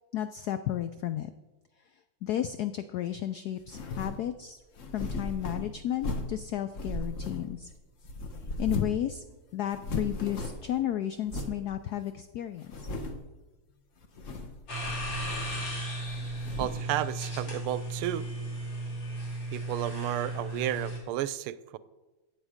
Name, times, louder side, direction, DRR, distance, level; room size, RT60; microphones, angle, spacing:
voice 1, 0.1-1.3 2.2-4.6 4.9-7.7 8.6-9.2 9.5-12.9, left 11 dB, 90° left, 11 dB, 0.8 m, -33 dB
sound 1, 3.7-4.2 4.8-6.4 6.7-7.7 8.0-9.1 9.3-9.4 9.7-10.7 11.3-11.6 12.1-12.2 12.6-13.3 14.0-14.6 14.8-15.7 16.1-16.9, left 1 dB, 45° left, 1.2 m, -37 dB
sound 2, 14.7-21.0, right 1 dB, 60° left, 4.3 m, -35 dB
voice 2, 16.6-18.3 19.5-21.8, right 13 dB, 90° right, 16 dB, 1.5 m, -32 dB
15.5 x 8.5 x 5.0 m, 1.2 s
omnidirectional pair, 2.3 m